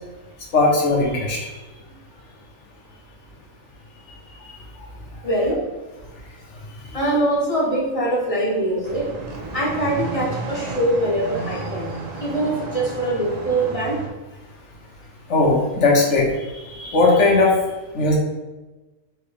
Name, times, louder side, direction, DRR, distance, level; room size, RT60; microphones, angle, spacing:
voice 1, 0.5-1.4 15.3-16.2 16.5-17.5 17.9-18.1, left 3 dB, 65° left, -2 dB, 1.3 m, -18 dB
voice 2, 5.2-5.6 6.9-9.1 9.5-11.9 12.2-14.0, right 1 dB, 30° left, -5 dB, 0.9 m, -23 dB
sound 1, 8.8-14.1, right 3 dB, 50° right, 0.5 m, -32 dB
4.6 x 2.9 x 3.4 m, 1.2 s
omnidirectional pair, 1.4 m